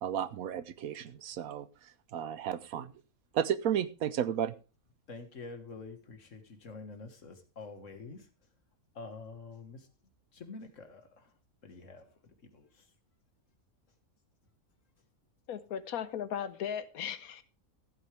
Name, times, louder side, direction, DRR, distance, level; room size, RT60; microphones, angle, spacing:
voice 1, 0.0-1.7 2.1-2.9 3.3-4.5, right 9 dB, 75° right, 1.2 m, -33 dB
voice 2, 5.1-8.3 9.0-9.9 10.3-11.3 11.6-12.9, left 3 dB, 60° left, 1.9 m, -47 dB
voice 3, 15.5-17.4, left 8 dB, 80° left, 1.3 m, -37 dB
15.0 x 8.9 x 3.3 m
omnidirectional pair, 1.5 m